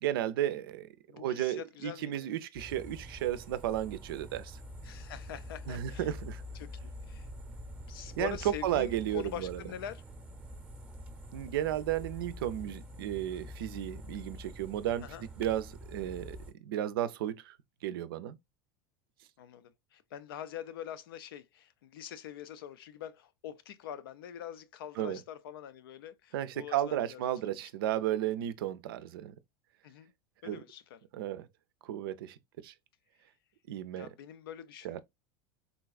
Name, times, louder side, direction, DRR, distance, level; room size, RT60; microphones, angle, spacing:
voice 1, 0.0-4.6 5.7-6.4 8.2-8.4 8.6-9.6 11.3-15.1 15.4-17.6 17.8-18.4 25.0-25.2 26.3-29.3 30.4-30.6 31.1-31.5 31.8-32.4 32.6-32.7 33.7-34.1 34.8-35.0, right 12 dB, 70° right, 0.4 m, -34 dB
voice 2, 1.1-2.3 4.8-6.1 6.5-7.3 7.9-10.0 15.0-15.3 19.4-27.6 29.8-30.1 30.4-31.0 33.9-35.0, left 10 dB, 75° left, 0.5 m, -44 dB
sound 1, 2.6-16.5, equal, 10° right, 0.7 m, -46 dB
3.8 x 2.3 x 2.4 m
hypercardioid pair, 90°, 12 cm